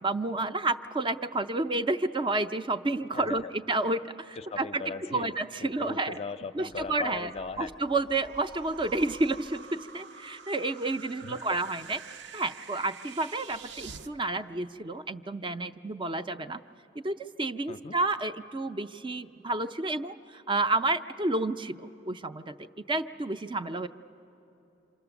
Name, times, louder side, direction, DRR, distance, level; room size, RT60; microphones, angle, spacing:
voice 1, 0.0-4.8 5.1-6.1 6.5-7.3 7.6-12.0 12.3-16.6 17.0-22.5 22.9-23.9, right 2 dB, 25° right, 9 dB, 0.5 m, -30 dB
voice 2, 3.1-3.5 4.4-7.7 11.2-11.6 17.7-18.0, left 4 dB, 35° left, 9 dB, 0.5 m, -39 dB
sound 1, 6.7-14.1, right 5 dB, 70° right, 0.7 m, -47 dB
27.5 x 26.5 x 7.0 m, 3.0 s
head